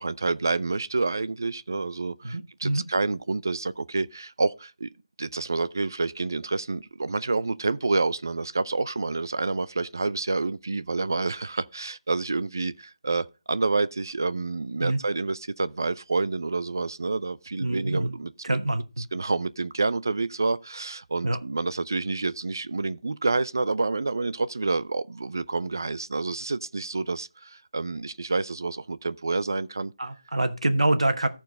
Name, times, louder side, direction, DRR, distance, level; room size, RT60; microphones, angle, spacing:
voice 1, 0.0-4.9 5.2-18.6 19.1-29.9, right 3 dB, 35° right, 0.4 m, -28 dB
voice 2, 2.2-2.8 14.8-15.0 17.6-18.1 18.4-19.0 21.2-21.4 30.0-31.3, right 2 dB, 85° right, 1.4 m, -25 dB
13.5 x 4.6 x 5.3 m
figure-of-eight pair, 180°, 3 cm